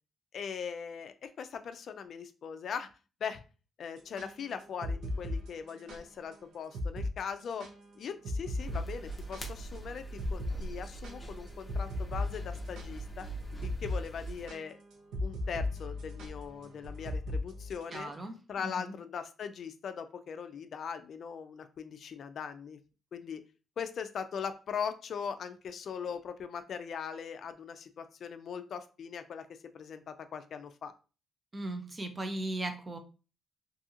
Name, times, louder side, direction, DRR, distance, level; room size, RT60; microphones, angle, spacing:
voice 1, 0.3-2.9 3.2-3.4 3.8-7.7 8.0-13.3 13.6-14.8 15.2-18.1 18.5-22.8 23.1-23.4 23.8-29.5 29.7-30.9, left 7 dB, 55° left, 9 dB, 0.3 m, -40 dB
sound 1, 4.0-6.0 6.3-6.4 6.7-7.1 7.4-9.8 10.2-10.6 10.8-18.1, left 2 dB, 85° right, 0.5 m, -37 dB
sound 2, 8.6-14.5, right 2 dB, 15° left, 0.7 m, -42 dB
voice 2, 17.9-18.9 31.5-33.0, right 1 dB, 25° right, 6 dB, 0.5 m, -37 dB
2.7 x 2.6 x 2.4 m, 0.34 s
cardioid pair, 105°, 0 cm